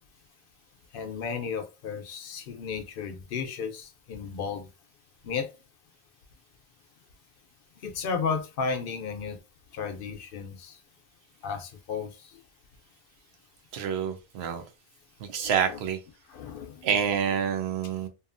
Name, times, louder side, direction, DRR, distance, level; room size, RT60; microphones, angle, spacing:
voice 1, 0.9-4.7 5.2-5.5 7.8-9.4 9.7-10.8 11.4-12.4 15.3-15.8 16.3-16.9, left 5 dB, 65° left, 0.7 m, -34 dB
voice 2, 13.7-14.6 15.2-16.0 16.8-18.1, right 8 dB, 85° right, 0.8 m, -27 dB
2.7 x 2.3 x 2.5 m
omnidirectional pair, 1.1 m